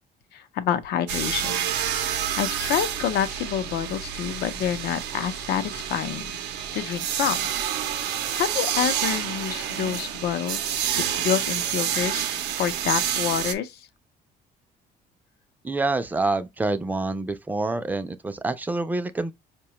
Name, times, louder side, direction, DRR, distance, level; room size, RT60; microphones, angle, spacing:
voice 1, 0.3-1.6 1.9-6.3 6.7-7.5 7.9-8.0 8.3-10.9 11.2-12.2 12.6-13.8, left 9 dB, 75° left, 0.6 m, -28 dB
sound 1, 1.1-13.5, right 9 dB, 85° right, 0.6 m, -28 dB
voice 2, 15.6-19.3, right 2 dB, 10° right, 0.4 m, -27 dB
4.7 x 2.2 x 2.8 m
cardioid pair, 110°, 17 cm